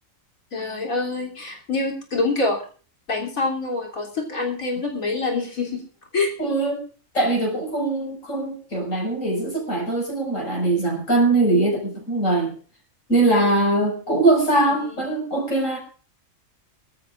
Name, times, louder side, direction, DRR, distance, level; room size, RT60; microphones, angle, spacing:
voice 1, 0.5-2.6 3.1-5.8 6.1-6.3 14.7-15.0, left 3 dB, 85° left, -1 dB, 3.8 m, -26 dB
voice 2, 6.4-6.8 7.1-12.5 13.1-15.8, right 2 dB, 70° left, -1 dB, 6.1 m, -21 dB
24.5 x 14.0 x 2.5 m, 0.40 s
omnidirectional pair, 1.4 m